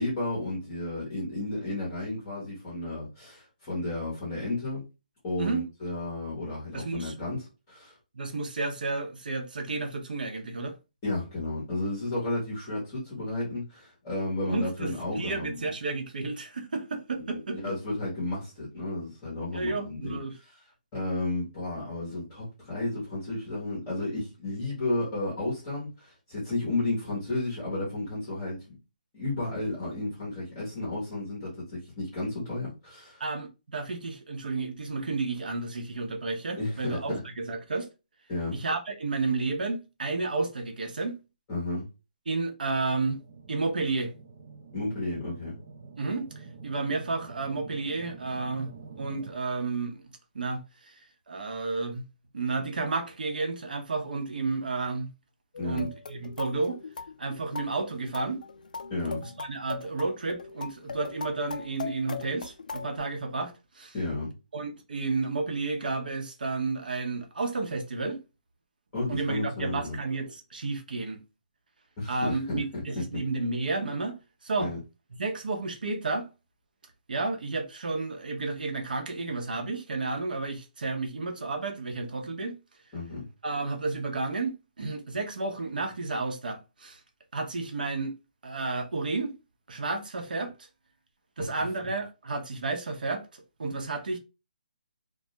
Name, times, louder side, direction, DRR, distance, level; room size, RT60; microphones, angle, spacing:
voice 1, 0.0-4.9 5.2-8.0 11.0-15.7 17.2-20.6 20.9-28.8 29.1-33.2 36.6-37.2 38.3-38.6 41.5-41.9 44.7-45.6 55.6-55.9 58.9-59.2 63.9-64.3 68.9-70.0 72.0-72.8 74.6-74.8 82.9-83.3, left 2 dB, 15° left, 0.7 m, -32 dB
voice 2, 6.7-7.1 8.1-10.8 14.5-17.6 19.5-20.4 33.2-37.9 38.5-41.1 42.3-43.2 43.5-44.1 46.0-46.3 46.6-50.0 50.3-50.6 51.3-52.1 52.3-55.1 55.6-56.8 57.2-58.4 59.2-63.9 64.5-68.2 69.1-71.2 72.1-74.2 74.4-74.7 75.2-76.3 77.1-82.6 83.4-87.0 87.3-88.1 88.4-89.3 89.7-90.5 91.4-93.2 93.6-94.2, right 3 dB, 70° right, 0.7 m, -31 dB
sound 1, 42.8-49.3, right 4 dB, 35° right, 0.3 m, -47 dB
sound 2, 55.5-63.0, left 4 dB, 60° left, 0.4 m, -40 dB
2.2 x 2.0 x 2.7 m
hypercardioid pair, 175°, 5 cm